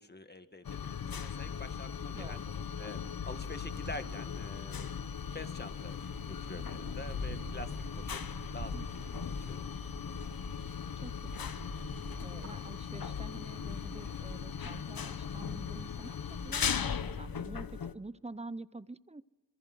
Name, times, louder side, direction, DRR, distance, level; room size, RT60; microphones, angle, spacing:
voice 1, 0.0-2.4 2.8-3.0 3.3-4.9 5.3-6.0 6.3-8.2 8.5-8.7 9.1-9.7, left 2 dB, 30° left, 9 dB, 1.9 m, -46 dB
sound 1, 0.6-17.9, left 7 dB, 80° left, 1.0 m, -38 dB
voice 2, 2.1-2.5 8.7-8.9 11.0-11.6 12.2-16.9 17.2-19.2, right 2 dB, 20° right, 16 dB, 0.8 m, -47 dB
sound 2, 3.2-17.5, right 2 dB, 55° right, 4.5 m, -48 dB
26.0 x 23.5 x 6.2 m, 1.2 s
cardioid pair, 50°, 35 cm